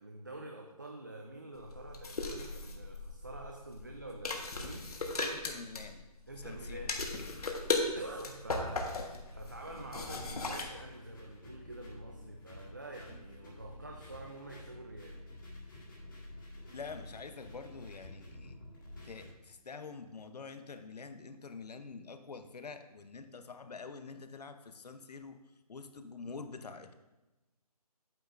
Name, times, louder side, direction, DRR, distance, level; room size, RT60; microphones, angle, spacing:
voice 1, 0.0-4.9 6.3-7.0 7.9-15.2, right 2 dB, 30° right, 2 dB, 0.4 m, -47 dB
sound 1, 1.6-10.6, left 3 dB, 70° left, 1.3 m, -37 dB
voice 2, 5.2-6.0 6.4-6.9 13.1-13.2 16.7-18.6 19.0-25.4 25.7-26.9, left 4 dB, 90° left, 9 dB, 0.8 m, -46 dB
sound 2, 6.3-19.3, left 1 dB, 30° left, 1.8 m, -51 dB
8.7 x 8.2 x 2.5 m, 1.1 s
hypercardioid pair, 180°, 20 cm